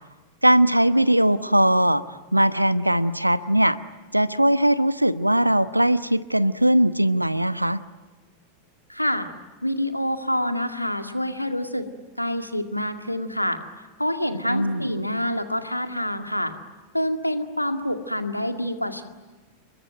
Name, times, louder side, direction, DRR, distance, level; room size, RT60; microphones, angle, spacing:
voice 1, 0.4-2.0 2.3-3.8 4.1-7.8 14.5-14.9, right 1 dB, 90° right, 15 dB, 0.9 m, -20 dB
voice 2, 8.9-9.3 9.6-11.9 12.2-16.5 16.9-19.0, equal, 90° left, 7 dB, 2.1 m, -27 dB
29.0 x 22.5 x 9.2 m, 1.3 s
figure-of-eight pair, 90°, 0 cm